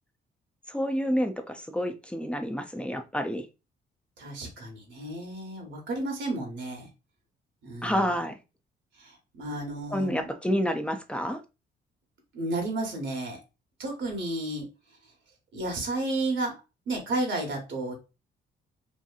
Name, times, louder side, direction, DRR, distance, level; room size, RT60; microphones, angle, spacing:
voice 1, 0.7-3.5 7.8-8.4 9.9-11.4, equal, 5° left, 7 dB, 0.4 m, -29 dB
voice 2, 4.2-6.9 7.6-8.0 9.0-10.2 12.3-13.4 13.8-14.6 15.5-16.5 16.9-17.9, right 2 dB, 65° right, 2 dB, 1.0 m, -32 dB
2.8 x 2.6 x 2.4 m, 0.28 s
cardioid pair, 90°, 20 cm